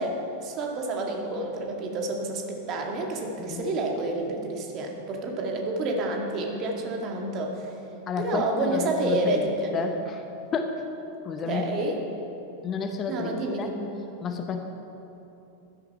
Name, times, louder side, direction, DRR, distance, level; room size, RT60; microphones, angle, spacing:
voice 1, 0.0-7.8 8.2-10.0 11.5-12.0 13.1-13.9, right 2 dB, 35° right, 1 dB, 2.0 m, -29 dB
voice 2, 8.1-9.4 9.7-10.2 10.5-10.7 11.2-11.6 12.6-13.3 13.6-13.7 14.2-14.6, left 5 dB, 25° left, 5 dB, 1.0 m, -30 dB
15.0 x 12.5 x 4.2 m, 3.0 s
figure-of-eight pair, 90°, 0 cm